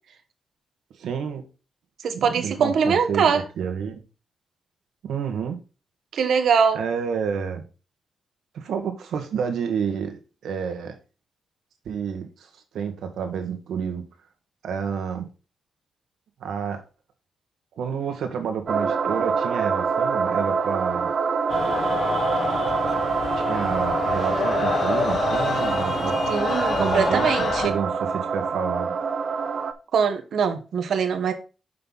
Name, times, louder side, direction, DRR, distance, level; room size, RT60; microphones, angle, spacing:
voice 1, 1.0-1.4 2.1-4.0 5.0-5.6 6.7-7.6 8.5-11.0 11.9-12.5 12.7-14.0 14.6-15.3 16.4-16.8 17.8-21.1 23.4-26.2 26.8-27.3 27.6-29.0, right 7 dB, 85° right, 1.6 m, -29 dB
voice 2, 2.0-3.4 6.1-6.8 26.3-27.7 29.9-31.3, right 6 dB, 70° right, 1.2 m, -22 dB
sound 1, 18.7-29.7, right 5 dB, 50° right, 0.8 m, -25 dB
sound 2, 21.5-27.7, left 5 dB, 50° left, 1.0 m, -27 dB
6.7 x 5.6 x 4.0 m
cardioid pair, 130°, 0 cm